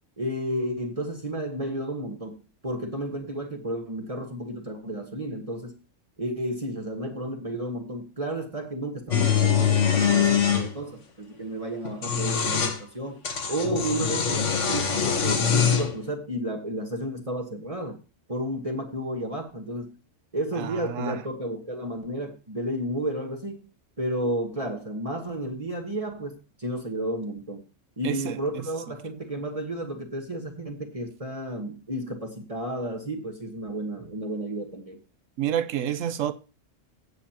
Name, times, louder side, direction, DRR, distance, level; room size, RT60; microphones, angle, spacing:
voice 1, 0.2-5.8 6.2-13.2 13.5-18.0 18.3-19.9 20.3-23.6 24.0-27.6 28.0-35.0, right 1 dB, 30° right, 1.4 m, -32 dB
sound 1, 9.1-10.7 11.8-12.8 13.2-15.9, left 7 dB, 70° left, 1.5 m, -23 dB
voice 2, 20.6-21.2 28.0-28.6 35.4-36.3, right 10 dB, 85° right, 1.1 m, -29 dB
16.0 x 7.4 x 2.9 m
omnidirectional pair, 1.3 m